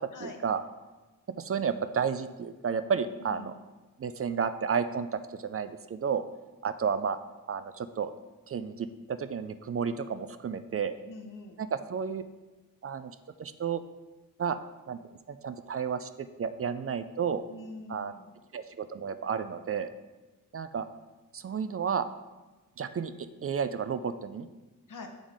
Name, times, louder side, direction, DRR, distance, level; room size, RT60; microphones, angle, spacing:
voice 1, 0.0-0.6 1.4-3.5 4.0-6.3 6.6-7.2 7.5-8.1 8.5-10.9 11.6-12.2 12.8-13.8 14.4-14.6 14.9-15.0 15.3-17.4 17.9-18.1 18.5-19.9 20.5-20.9 21.3-22.1 22.8-24.5, right 6 dB, 45° right, 11 dB, 0.4 m, -32 dB
voice 2, 3.1-3.6 11.1-11.6 17.5-18.4 24.9-25.1, left 3 dB, 65° left, 4 dB, 1.0 m, -44 dB
7.2 x 3.8 x 4.9 m, 1.2 s
cardioid pair, 65°, 33 cm